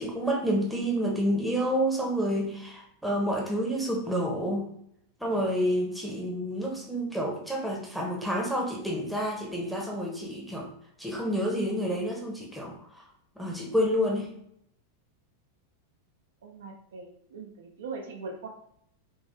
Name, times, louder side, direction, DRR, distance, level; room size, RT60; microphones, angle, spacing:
voice 1, 0.0-4.7 5.2-10.7 11.0-13.1 13.4-14.3, equal, ahead, -2 dB, 0.8 m, -29 dB
voice 2, 16.4-18.5, right 4 dB, 60° right, 2 dB, 0.5 m, -41 dB
3.6 x 2.5 x 2.7 m, 0.71 s
figure-of-eight pair, 90°, 0 cm